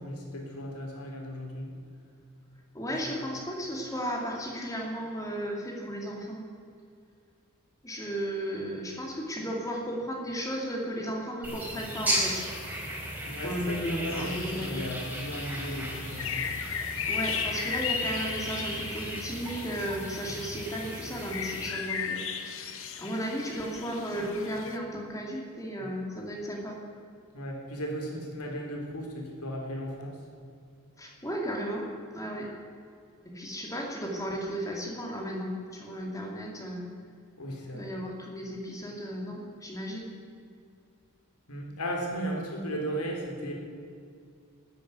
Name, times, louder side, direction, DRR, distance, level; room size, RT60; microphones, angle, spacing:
voice 1, 0.0-1.7 3.2-3.3 13.3-16.5 25.8-25.9 27.3-30.2 37.4-37.9 41.5-43.5, equal, 85° left, 1 dB, 3.6 m, -36 dB
voice 2, 2.7-6.4 7.8-12.4 13.4-14.8 17.1-22.7 23.0-26.8 31.0-31.9 32.1-32.5 33.3-36.8 37.7-40.2, equal, 15° left, -1 dB, 2.5 m, -34 dB
sound 1, 11.4-21.7, equal, 10° right, 4.2 m, -35 dB
sound 2, 14.1-24.8, left 7 dB, 60° left, 1.3 m, -37 dB
12.5 x 10.5 x 9.3 m, 2.4 s
head